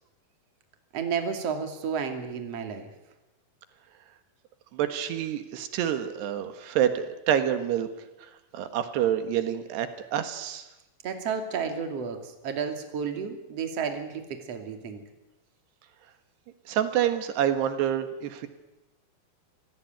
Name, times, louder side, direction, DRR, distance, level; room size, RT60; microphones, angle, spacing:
voice 1, 0.9-2.9 11.0-15.0, right 6 dB, 40° right, 6 dB, 3.1 m, -32 dB
voice 2, 4.7-7.9 8.5-10.7 16.7-18.5, right 10 dB, 85° right, 9 dB, 3.6 m, -27 dB
27.0 x 16.5 x 9.4 m, 1.0 s
omnidirectional pair, 4.7 m